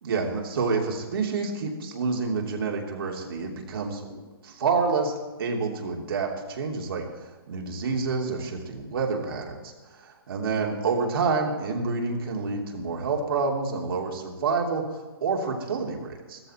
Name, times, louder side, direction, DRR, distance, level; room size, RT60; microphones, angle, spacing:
voice 1, 0.0-5.1 5.4-7.1 7.5-9.7 10.3-14.9 15.2-16.4, right 4 dB, 65° right, 1 dB, 3.0 m, -28 dB
15.5 x 14.0 x 4.4 m, 1.2 s
hypercardioid pair, 155°, 13 cm